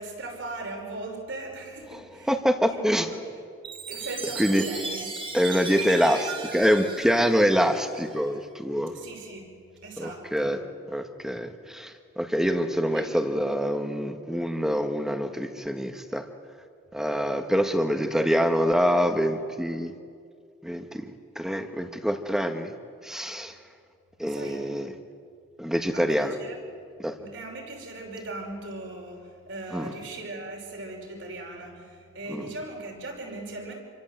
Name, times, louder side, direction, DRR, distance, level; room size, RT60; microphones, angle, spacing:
voice 1, 0.0-2.4 2.7-3.2 3.9-5.1 8.9-10.6 12.9-13.1 24.3-24.7 25.9-26.6 27.2-33.7, right 2 dB, 60° right, 1 dB, 5.7 m, -39 dB
voice 2, 2.3-3.1 4.4-4.6 5.3-8.9 10.0-10.6 10.9-16.2 16.9-19.9 20.6-22.7 23.0-23.5 24.2-24.9 25.6-26.3 27.0-27.1 29.7-29.8 32.3-32.5, equal, ahead, 6 dB, 1.5 m, -25 dB
Chime, 3.6-8.2, right 4 dB, 25° right, 1.9 m, -36 dB
28.5 x 24.0 x 8.1 m, 2.3 s
head